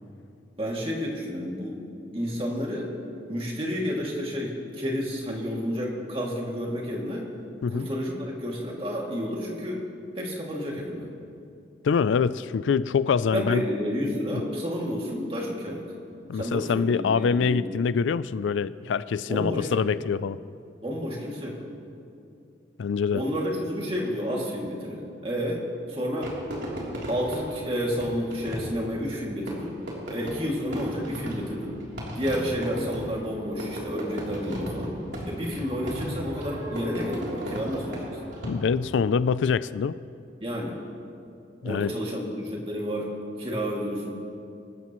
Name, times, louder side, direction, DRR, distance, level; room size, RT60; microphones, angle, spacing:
voice 1, 0.6-1.8 2.1-2.9 3.3-7.3 7.7-9.9 10.2-11.1 13.3-15.8 16.3-17.7 19.3-19.9 20.8-21.6 23.1-26.3 27.1-29.8 30.1-31.8 32.1-38.1 40.4-40.8 41.6-44.1, equal, 30° right, -2 dB, 2.4 m, -30 dB
voice 2, 11.8-13.6 16.3-20.4 22.8-23.2 38.4-40.0 41.6-41.9, left 6 dB, 85° left, 17 dB, 0.4 m, -25 dB
Fireworks, 26.2-38.9, equal, 75° right, 3.3 m, -36 dB
24.0 x 13.0 x 3.1 m, 2.6 s
head